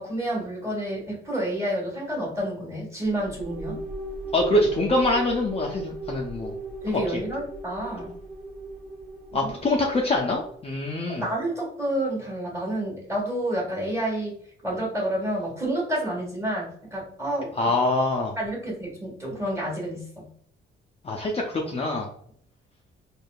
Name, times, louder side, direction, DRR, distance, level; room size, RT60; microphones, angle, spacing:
voice 1, 0.0-3.8 6.8-8.1 9.3-9.5 11.2-14.4 14.6-17.5 18.4-20.3, right 1 dB, 15° right, -2 dB, 1.3 m, -29 dB
sound 1, 3.0-10.6, right 2 dB, 55° right, 1.4 m, -37 dB
voice 2, 4.3-6.5 6.9-7.2 9.3-11.2 17.6-18.4 21.0-22.1, left 2 dB, 30° left, 0 dB, 0.4 m, -24 dB
3.4 x 2.4 x 2.2 m, 0.65 s
cardioid pair, 125°, 21 cm